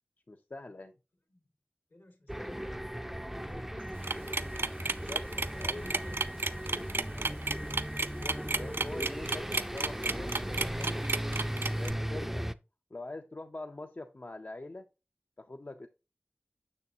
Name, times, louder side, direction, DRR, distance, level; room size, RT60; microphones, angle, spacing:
voice 1, 0.3-0.9 5.1-5.9 8.0-10.9 11.8-12.5 12.9-14.9 15.4-15.9, left 2 dB, 50° left, 0.5 m, -44 dB
voice 2, 1.9-7.7, left 2 dB, 75° left, 2.2 m, -56 dB
sound 1, 2.3-12.5, equal, 5° right, 0.4 m, -37 dB
sound 2, 4.0-11.9, right 3 dB, 75° right, 0.4 m, -32 dB
6.7 x 6.5 x 2.7 m
wide cardioid pair, 55°, 4 cm